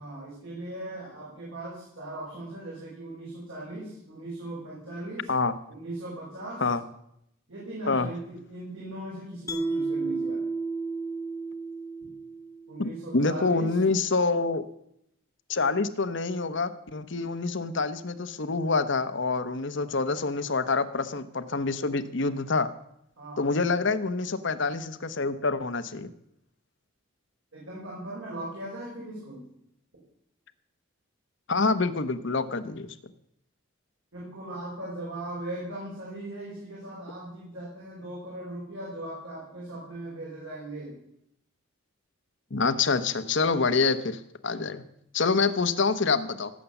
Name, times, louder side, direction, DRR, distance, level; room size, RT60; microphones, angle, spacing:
voice 1, 0.0-5.3 5.7-6.6 7.5-10.4 12.7-13.9 19.8-19.9 23.2-23.5 27.5-29.4 34.1-40.9, right 1 dB, 70° right, -6 dB, 6.2 m, -39 dB
Mallet percussion, 9.5-12.7, right 3 dB, 15° left, 0.9 m, -32 dB
voice 2, 12.8-14.6 15.5-22.7 23.4-26.1 31.5-32.9 42.5-44.8 45.1-46.5, left 4 dB, 55° left, 12 dB, 1.0 m, -26 dB
17.5 x 8.5 x 7.1 m, 0.76 s
head